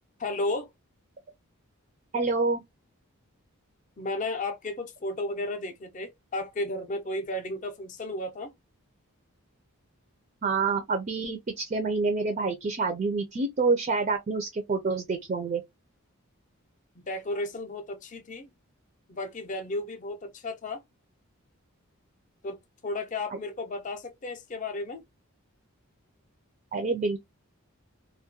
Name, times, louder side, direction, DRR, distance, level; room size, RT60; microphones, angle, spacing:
voice 1, 0.2-0.7 4.0-8.5 17.0-18.5 19.1-20.8 22.4-25.0, left 2 dB, 35° left, 0.5 m, -33 dB
voice 2, 2.1-2.6 10.4-15.6 26.7-27.2, right 4 dB, 35° right, 0.4 m, -27 dB
2.3 x 2.1 x 2.7 m
head